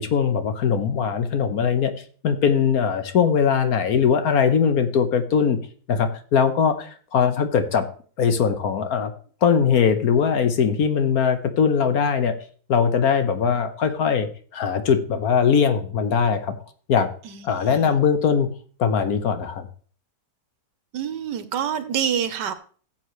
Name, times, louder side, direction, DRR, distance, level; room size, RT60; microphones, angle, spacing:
voice 1, 0.0-1.9 2.2-5.6 5.9-7.9 8.2-9.1 9.4-12.3 12.7-16.6 16.9-17.1 17.4-18.5 18.8-19.7, left 6 dB, 65° left, 9 dB, 1.4 m, -21 dB
voice 2, 17.2-18.0 20.9-22.5, right 8 dB, 80° right, 11 dB, 1.6 m, -27 dB
16.0 x 7.4 x 3.2 m, 0.43 s
omnidirectional pair, 1.8 m